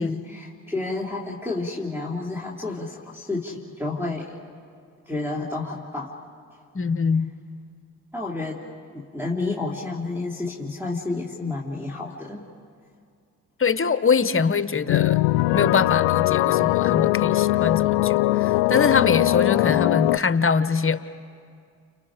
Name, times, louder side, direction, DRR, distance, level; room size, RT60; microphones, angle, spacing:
voice 1, 0.0-4.4 5.1-6.2 8.1-8.6 8.9-12.5, left 3 dB, 5° right, -5 dB, 3.2 m, -30 dB
voice 2, 6.7-7.3 13.6-15.2 15.5-21.0, left 5 dB, 30° left, 13 dB, 1.2 m, -23 dB
sound 1, 14.9-20.2, left 19 dB, 75° left, 0.5 m, -21 dB
30.0 x 29.5 x 5.1 m, 2.2 s
hypercardioid pair, 45°, 45 cm